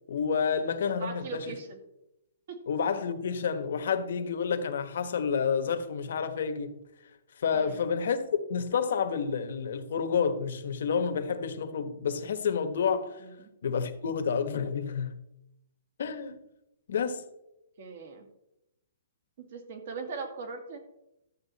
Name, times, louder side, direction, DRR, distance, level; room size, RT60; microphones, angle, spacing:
voice 1, 0.1-1.5 2.7-6.8 7.4-8.2 8.5-13.2 13.6-15.2 16.0-16.4 16.9-17.2, left 6 dB, 65° left, 1.4 m, -29 dB
voice 2, 1.0-1.8 2.5-2.6 7.5-7.9 13.2-13.5 17.8-18.3 19.4-20.8, right 4 dB, 45° right, 2.1 m, -40 dB
13.0 x 7.7 x 4.2 m
hypercardioid pair, 165°, 0 cm